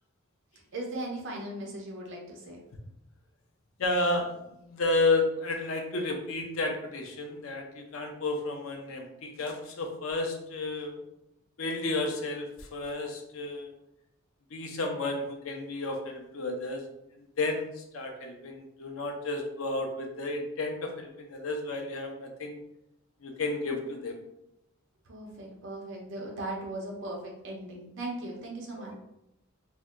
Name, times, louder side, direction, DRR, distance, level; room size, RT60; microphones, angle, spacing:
voice 1, 0.7-2.6 25.0-29.0, right 1 dB, 65° right, -1 dB, 0.8 m, -38 dB
voice 2, 3.8-11.0 11.6-13.7 14.5-16.8 17.1-22.6 23.2-24.2 28.8-29.0, left 2 dB, 90° left, 3 dB, 0.6 m, -32 dB
2.7 x 2.2 x 3.6 m, 0.84 s
head